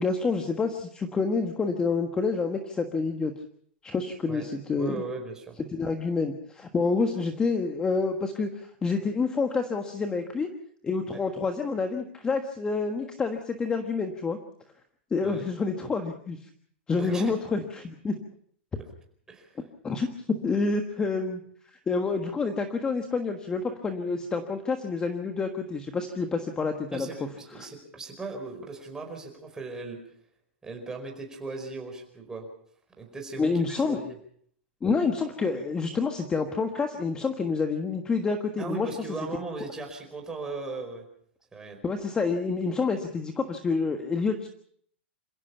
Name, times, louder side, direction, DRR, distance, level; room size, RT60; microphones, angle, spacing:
voice 1, 0.0-3.3 3.8-5.0 5.7-10.5 10.8-14.4 15.1-16.4 16.9-18.2 19.8-21.4 21.7-27.1 27.6-27.7 33.4-34.0 34.8-38.9 41.8-44.5, left 4 dB, 15° left, 6 dB, 1.4 m, -28 dB
voice 2, 4.8-5.6 11.1-11.2 15.2-15.4 17.0-17.3 19.3-19.6 26.9-30.0 30.6-32.5 33.0-34.0 38.6-41.0 41.5-41.8, right 3 dB, 10° right, 3 dB, 4.9 m, -38 dB
28.0 x 16.5 x 5.7 m, 0.62 s
hypercardioid pair, 145°, 6 cm